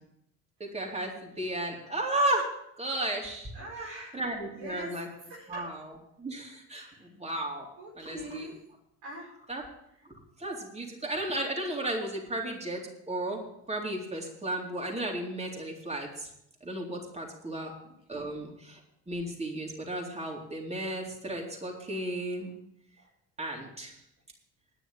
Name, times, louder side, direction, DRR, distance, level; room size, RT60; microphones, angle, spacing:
voice 1, 0.6-2.5 2.8-3.5 4.1-5.1 5.5-5.9 6.2-7.7 8.0-8.5 9.5-9.6 10.4-12.8 13.1-13.4 13.7-16.3 16.6-17.7 18.1-18.8 19.1-22.5 23.4-23.9, right 1 dB, 20° right, -1 dB, 3.8 m, -34 dB
voice 2, 3.5-4.2 4.5-5.8 6.7-7.1 7.8-8.6 9.0-9.3 17.4-18.3 21.0-21.1 23.0-23.1 23.5-23.6, right 1 dB, 90° right, -2 dB, 4.9 m, -44 dB
10.5 x 6.8 x 9.0 m, 0.77 s
supercardioid pair, 60°, 34 cm